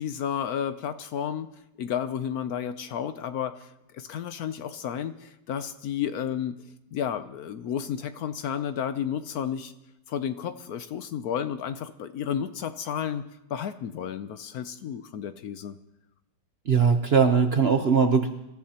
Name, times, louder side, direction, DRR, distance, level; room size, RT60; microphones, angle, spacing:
voice 1, 0.0-1.5 1.8-6.6 6.9-9.7 10.1-15.8, left 8 dB, 65° left, 11 dB, 1.0 m, -32 dB
voice 2, 16.7-18.3, right 6 dB, 50° right, 6 dB, 0.8 m, -20 dB
25.5 x 14.0 x 2.9 m, 0.89 s
omnidirectional pair, 1.9 m